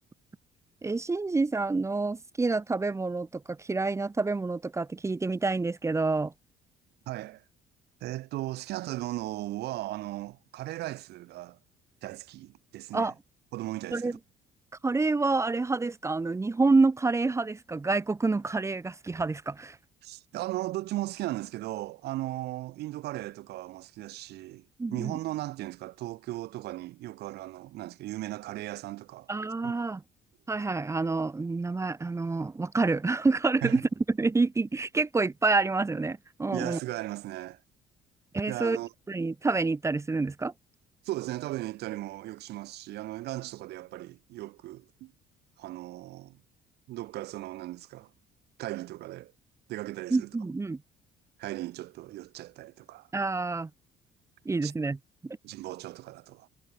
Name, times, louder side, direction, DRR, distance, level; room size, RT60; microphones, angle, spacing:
voice 1, 0.8-6.3 12.9-13.1 13.9-14.2 14.8-19.8 24.8-25.2 29.3-30.0 30.5-36.8 38.3-38.8 39.1-40.5 50.1-50.8 53.1-53.7 54.4-55.0 55.2-55.4, right 3 dB, 15° right, 1.0 m, -28 dB
voice 2, 7.1-7.4 8.0-11.6 12.0-13.1 13.5-14.2 20.0-24.7 24.9-29.3 29.6-29.9 33.6-33.8 36.5-37.6 38.5-38.9 41.0-45.1 45.6-46.4 46.9-48.1 48.6-49.3 49.7-50.3 51.4-53.1 54.6-54.7 55.4-56.5, right 16 dB, 80° right, 2.0 m, -37 dB
cardioid pair, 110°, 17 cm